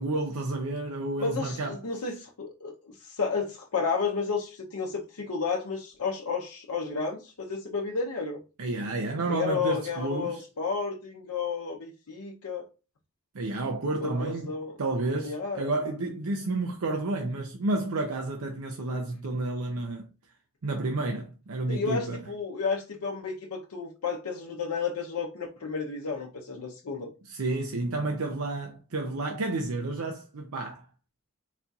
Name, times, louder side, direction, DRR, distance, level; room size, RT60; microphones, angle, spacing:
voice 1, 0.0-1.8 8.6-10.4 13.3-14.5 14.8-20.1 20.6-22.2 27.2-30.9, right 2 dB, 80° right, 0.6 m, -30 dB
voice 2, 1.2-8.4 9.3-12.6 14.0-14.7 15.2-15.7 21.7-27.1, left 5 dB, 90° left, 0.6 m, -32 dB
4.2 x 2.3 x 4.0 m
head